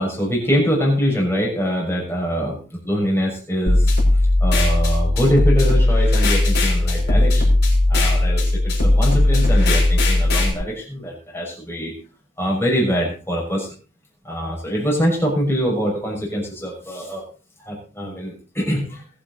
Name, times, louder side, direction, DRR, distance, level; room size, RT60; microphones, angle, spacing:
voice 1, 0.0-2.6 2.8-3.9 4.4-7.5 7.9-11.9 12.4-13.7 14.2-17.2 17.6-19.0, equal, 10° left, -1 dB, 6.2 m, -23 dB
sound 1, 3.7-10.5, left 1 dB, 55° left, 6.5 m, -17 dB
21.5 x 8.7 x 4.1 m, 0.38 s
head